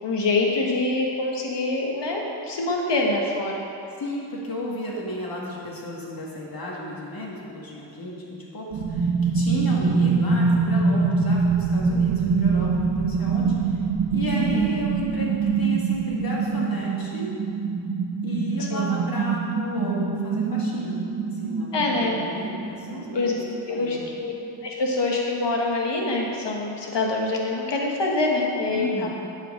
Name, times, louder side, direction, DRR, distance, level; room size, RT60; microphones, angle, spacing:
voice 1, 0.0-3.6 14.3-14.6 18.7-18.9 21.7-22.2 23.1-23.3 23.7-24.3 24.6-29.1, left 2 dB, 70° left, -1 dB, 1.6 m, -25 dB
voice 2, 4.0-13.8 14.1-17.3 18.2-21.1 21.3-23.3 23.7-24.1 28.7-29.1, left 1 dB, 50° left, -4 dB, 2.2 m, -33 dB
sound 1, 8.7-24.2 24.5-24.6, right 5 dB, 60° right, 0.9 m, -24 dB
9.1 x 5.0 x 6.5 m, 2.7 s
cardioid pair, 75°, 45 cm